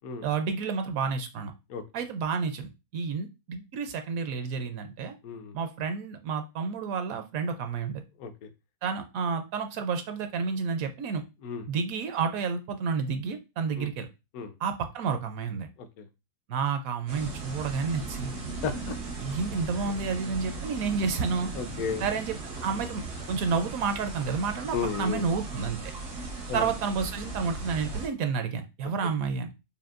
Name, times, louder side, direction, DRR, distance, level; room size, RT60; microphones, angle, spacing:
voice 1, 0.2-1.5 1.9-5.1 5.5-8.0 8.8-11.2 11.7-14.1 14.6-15.7 16.5-18.4 19.2-21.5 22.0-22.3 22.6-23.0 23.3-25.8 26.5-29.5, right 5 dB, 70° right, 7 dB, 0.9 m, -30 dB
voice 2, 5.2-5.6 8.2-8.5 11.4-11.6 13.8-13.9 14.3-14.5 15.8-16.1 18.6-19.0 19.8-19.9 21.5-22.0 24.7-25.3 26.5-26.7, left 5 dB, 70° left, 9 dB, 1.1 m, -33 dB
sound 1, 17.1-28.1, right 3 dB, 90° right, 1.7 m, -38 dB
5.1 x 2.5 x 2.4 m, 0.26 s
omnidirectional pair, 1.6 m